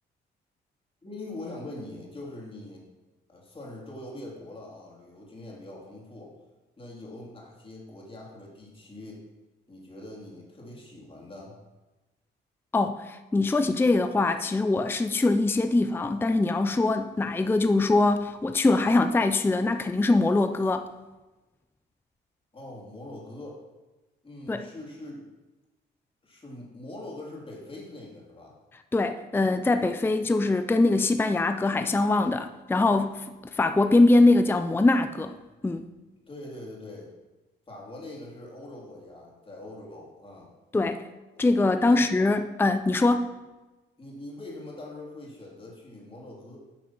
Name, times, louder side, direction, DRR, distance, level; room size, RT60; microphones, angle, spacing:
voice 1, 1.0-2.8 3.3-6.3 6.8-9.3 9.7-11.6 22.5-23.6 24.2-25.2 26.2-28.6 36.3-37.1 37.7-40.5 41.8-42.2 44.0-46.6, left 1 dB, 25° left, -3 dB, 3.3 m, -42 dB
voice 2, 12.7-20.9 24.5-24.7 28.9-33.2 33.5-35.4 35.6-35.8 40.7-41.0 41.4-43.4, left 2 dB, 10° left, 9 dB, 0.5 m, -23 dB
8.9 x 6.0 x 6.0 m, 1.1 s
cardioid pair, 90°, 20 cm